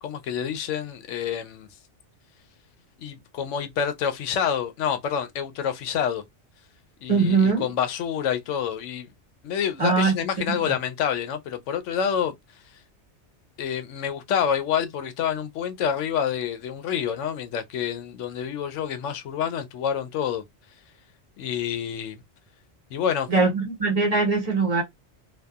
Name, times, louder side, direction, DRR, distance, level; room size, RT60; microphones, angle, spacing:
voice 1, 0.0-1.7 3.0-6.2 7.0-9.1 9.4-12.3 13.6-20.4 21.4-22.2 22.9-23.3, left 8 dB, 85° left, 0.9 m, -27 dB
voice 2, 7.1-7.7 9.8-10.1 10.7-10.8 23.3-24.8, right 4 dB, 35° right, 1.0 m, -21 dB
2.7 x 2.3 x 2.3 m
omnidirectional pair, 1.2 m